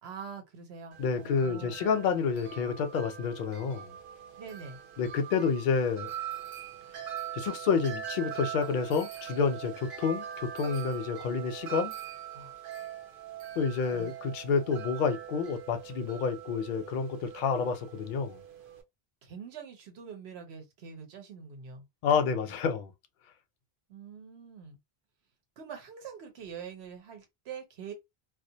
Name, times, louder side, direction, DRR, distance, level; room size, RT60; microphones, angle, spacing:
voice 1, 0.0-1.8 4.4-4.8 12.3-12.6 13.9-14.1 19.2-21.9 23.9-24.8 25.6-27.9, right 6 dB, 85° right, 1.0 m, -44 dB
Wind chime, 0.9-18.8, right 10 dB, 65° right, 0.7 m, -42 dB
voice 2, 1.0-4.0 5.0-6.1 7.3-11.9 13.6-18.4 22.0-22.9, left 5 dB, 60° left, 0.6 m, -29 dB
2.3 x 2.1 x 2.7 m
omnidirectional pair, 1.0 m